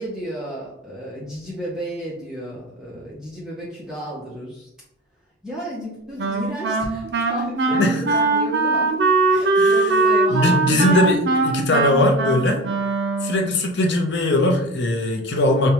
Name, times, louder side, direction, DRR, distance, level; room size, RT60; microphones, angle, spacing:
voice 1, 0.0-4.7 5.4-9.0 9.3-11.2, right 1 dB, 5° right, -7 dB, 0.7 m, -32 dB
Wind instrument woodwind instrument, 6.2-13.6, right 3 dB, 75° right, 0.5 m, -21 dB
voice 2, 10.3-12.6 13.2-15.7, left 1 dB, 85° left, 2 dB, 0.7 m, -20 dB
5.1 x 2.2 x 3.0 m, 0.78 s
head